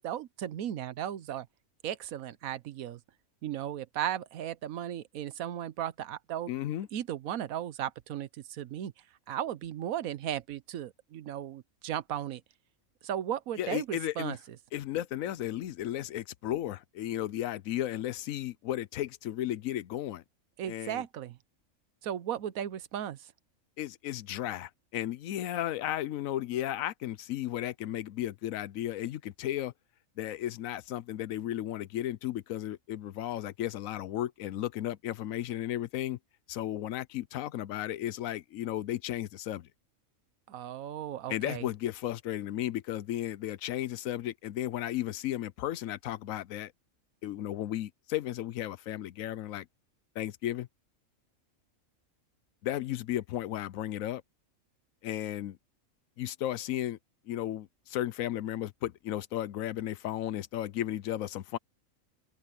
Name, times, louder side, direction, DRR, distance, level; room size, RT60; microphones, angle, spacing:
voice 1, 0.0-1.5 1.8-3.0 3.4-6.5 6.9-8.9 9.3-12.4 13.0-14.6 20.6-21.4 22.0-23.3 40.5-41.7, right 11 dB, 85° right, 1.2 m, -36 dB
voice 2, 6.5-6.9 13.6-14.4 14.7-20.2 20.7-21.0 23.8-29.7 30.2-36.2 36.5-39.7 41.3-46.7 47.2-49.7 50.2-50.7 52.6-54.2 55.0-55.6 56.2-57.0 57.3-61.6, left 12 dB, 80° left, 1.0 m, -34 dB
open air
omnidirectional pair, 1.4 m